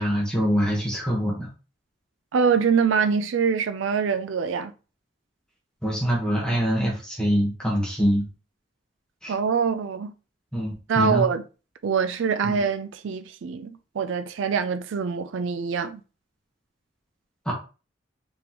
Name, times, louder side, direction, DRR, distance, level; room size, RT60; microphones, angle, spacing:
voice 1, 0.0-1.5 5.8-8.2 9.2-9.3 10.5-11.3 12.4-12.6 17.4-17.5, equal, 5° left, 1.2 m, -24 dB
voice 2, 2.3-4.7 9.3-10.1 10.9-11.4 11.8-16.0, right 6 dB, 75° right, 0.4 m, -24 dB
5.0 x 3.6 x 3.0 m
head